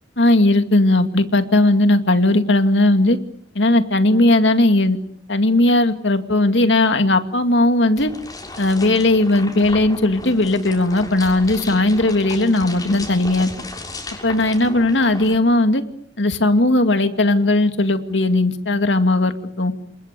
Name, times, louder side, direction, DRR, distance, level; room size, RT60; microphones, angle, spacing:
voice 1, 0.2-3.2 3.5-5.0 5.3-8.1 8.6-13.5 14.2-15.8 16.2-19.7, left 2 dB, 80° left, 8 dB, 2.3 m, -17 dB
sound 1, 8.0-15.4, left 2 dB, 20° left, 6.4 m, -35 dB
29.0 x 27.0 x 6.8 m, 0.67 s
head